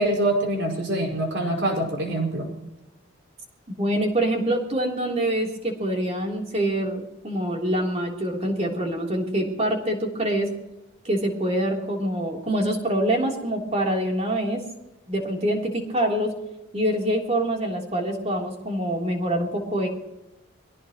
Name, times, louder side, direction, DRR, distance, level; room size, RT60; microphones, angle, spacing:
voice 1, 0.0-2.5, right 1 dB, 60° right, 1 dB, 5.5 m, -24 dB
voice 2, 3.8-10.5 11.0-14.6 15.1-16.3 16.7-19.9, right 1 dB, 30° right, 0 dB, 3.4 m, -25 dB
23.5 x 17.5 x 3.1 m, 0.92 s
head